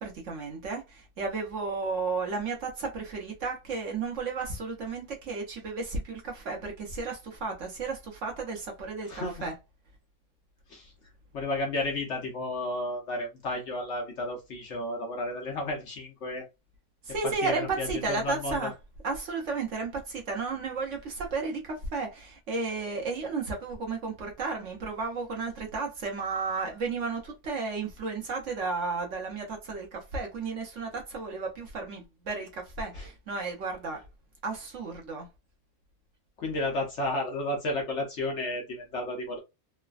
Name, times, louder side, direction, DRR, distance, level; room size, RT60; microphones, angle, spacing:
voice 1, 0.0-9.5 17.0-18.7 19.0-34.0 34.4-35.3, right 4 dB, 60° right, 0.9 m, -33 dB
voice 2, 9.1-9.5 10.7-10.9 11.3-16.5 17.4-17.9 18.2-18.7 33.0-33.1 36.4-39.4, left 1 dB, 60° left, 0.9 m, -32 dB
3.1 x 2.1 x 2.4 m
omnidirectional pair, 1.6 m